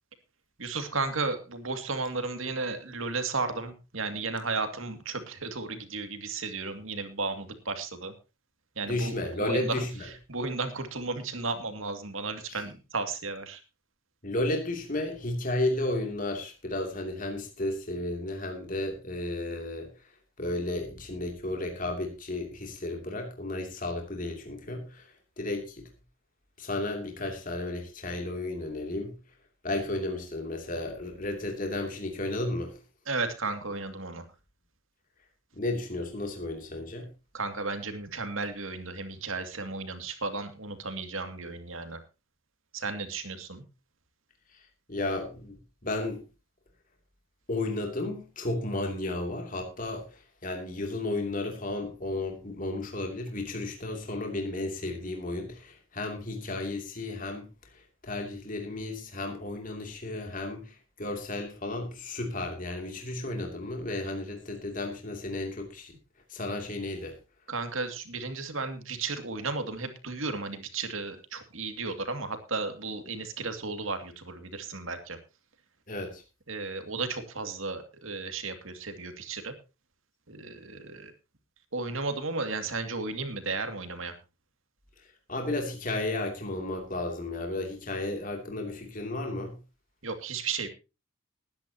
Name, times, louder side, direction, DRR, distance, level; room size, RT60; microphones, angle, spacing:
voice 1, 0.6-8.1 8.8-13.6 33.1-34.3 37.3-42.0 42.7-43.6 67.5-75.2 76.5-79.5 80.3-81.1 81.7-84.2 90.0-90.7, right 3 dB, 85° right, 7 dB, 2.4 m, -34 dB
voice 2, 8.9-9.9 14.2-19.9 20.4-25.1 25.4-25.8 26.6-29.1 29.6-32.8 35.6-37.1 44.9-46.2 47.5-57.5 57.7-65.9 66.3-67.1 75.9-76.2 85.3-89.6, left 2 dB, 40° left, 3 dB, 2.8 m, -33 dB
20.0 x 10.5 x 2.9 m, 0.29 s
head